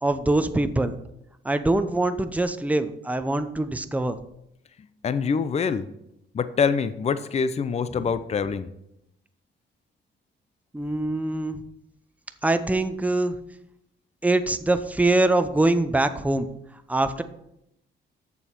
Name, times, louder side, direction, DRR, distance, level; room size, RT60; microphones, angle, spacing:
voice 1, 0.0-1.0 1.4-4.2 10.7-11.6 12.4-13.4 14.2-16.5 16.9-17.2, right 2 dB, 5° right, 10 dB, 0.7 m, -23 dB
voice 2, 5.0-5.8 6.3-8.7, left 6 dB, 35° left, 13 dB, 0.6 m, -25 dB
6.9 x 6.8 x 5.9 m, 0.80 s
cardioid pair, 90°, 20 cm